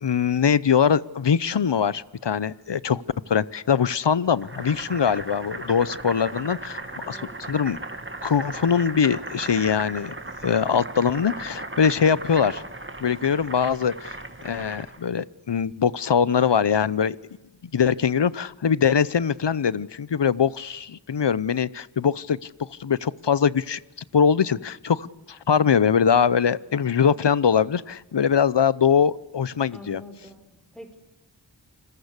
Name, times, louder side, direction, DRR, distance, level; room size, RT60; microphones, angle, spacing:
voice 1, 0.0-7.2 7.5-7.8 8.2-10.1 10.4-12.6 13.0-17.2 17.7-23.8 24.1-30.0, left 7 dB, 65° left, 19 dB, 0.8 m, -22 dB
Boiling, 4.4-15.1, right 2 dB, 25° right, 2.0 m, -37 dB
voice 2, 7.1-7.5 29.7-31.0, left 1 dB, ahead, 7 dB, 4.6 m, -45 dB
28.0 x 21.5 x 8.2 m, 1.0 s
wide cardioid pair, 50°, 45 cm